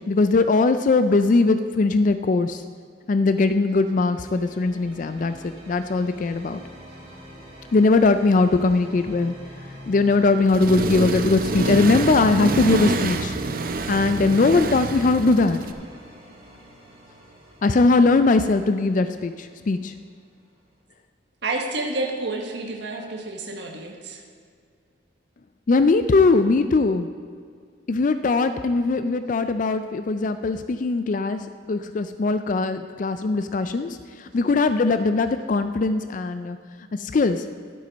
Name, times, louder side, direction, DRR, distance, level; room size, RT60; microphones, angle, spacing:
voice 1, 0.1-2.6 3.1-6.6 7.7-9.3 9.9-13.4 13.9-15.6 17.6-19.9 25.7-27.1 27.9-31.4 31.7-36.6 36.9-37.4, left 3 dB, 40° left, 10 dB, 0.4 m, -20 dB
sound 1, 3.0-20.8, equal, 30° right, 2.0 m, -45 dB
Accelerating revving vroom, 10.5-15.7, right 3 dB, 45° right, 0.5 m, -26 dB
voice 2, 21.4-24.2, right 2 dB, 60° right, 1 dB, 1.3 m, -29 dB
11.5 x 8.5 x 5.2 m, 2.1 s
head